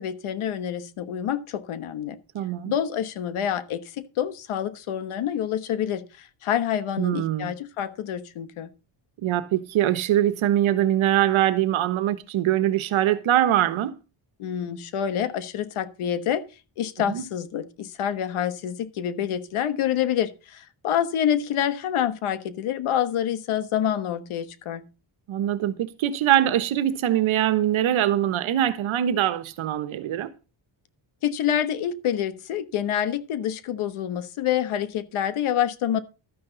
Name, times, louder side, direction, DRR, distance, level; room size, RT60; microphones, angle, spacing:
voice 1, 0.0-2.2 2.6-8.7 14.4-16.4 16.8-24.8 31.2-36.0, left 10 dB, 90° left, 1.3 m, -27 dB
voice 2, 2.3-2.7 7.0-7.5 9.2-13.9 17.1-17.2 25.3-30.3, right 12 dB, 75° right, 1.3 m, -23 dB
12.5 x 9.8 x 4.0 m
cardioid pair, 170°, 48 cm